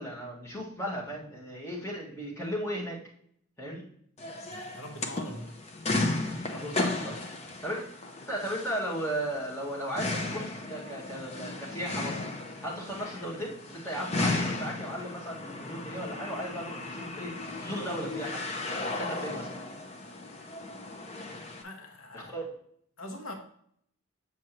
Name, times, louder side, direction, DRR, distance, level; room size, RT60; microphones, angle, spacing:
voice 1, 0.0-3.0 3.6-3.8 6.5-7.2 7.6-7.9 8.2-12.2 12.6-17.3 17.6-18.4 18.8-19.5 22.1-22.5, equal, 15° left, -5 dB, 1.8 m, -36 dB
sound 1, 4.2-21.6, left 2 dB, 30° left, 0.7 m, -35 dB
voice 2, 4.5-5.5 21.6-22.3 23.0-23.3, left 1 dB, 75° left, 3 dB, 1.1 m, -42 dB
7.7 x 6.1 x 3.0 m, 0.66 s
head